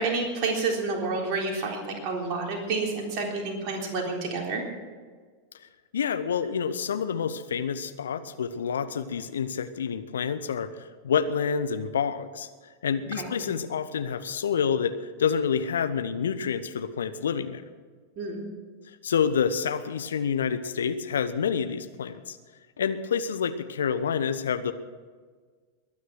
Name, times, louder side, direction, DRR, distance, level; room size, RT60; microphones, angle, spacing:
voice 1, 0.0-4.6 13.2-13.3 18.2-18.4, right 3 dB, 40° right, 0 dB, 3.7 m, -29 dB
voice 2, 5.6-12.5 12.8-17.6 19.0-22.4 22.8-24.7, left 7 dB, 65° left, 12 dB, 0.8 m, -28 dB
21.5 x 9.7 x 6.3 m, 1.5 s
figure-of-eight pair, 90°, 0 cm